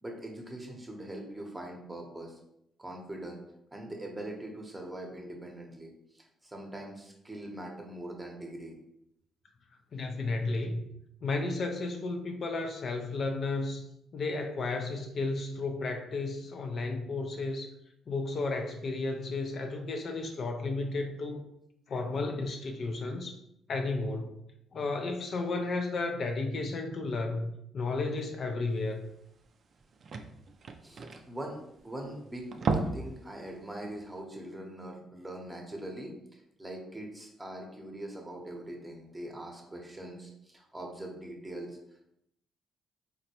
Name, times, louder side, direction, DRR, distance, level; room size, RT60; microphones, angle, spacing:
voice 1, 0.0-2.4 2.8-3.4 3.7-8.7 30.8-31.6 31.8-41.8, right 1 dB, 15° right, 1 dB, 0.8 m, -42 dB
voice 2, 9.9-10.8 11.2-13.9 14.1-17.7 18.1-21.4 21.9-23.4 23.7-24.4 24.7-29.1, left 3 dB, 55° left, 4 dB, 0.4 m, -33 dB
sound 1, 29.0-29.1 29.4-29.5 29.7-32.0 32.4-33.2 33.5-33.7 34.1-34.2, right 4 dB, 50° right, 0.3 m, -33 dB
4.0 x 2.1 x 2.8 m, 0.77 s
cardioid pair, 90°, 0 cm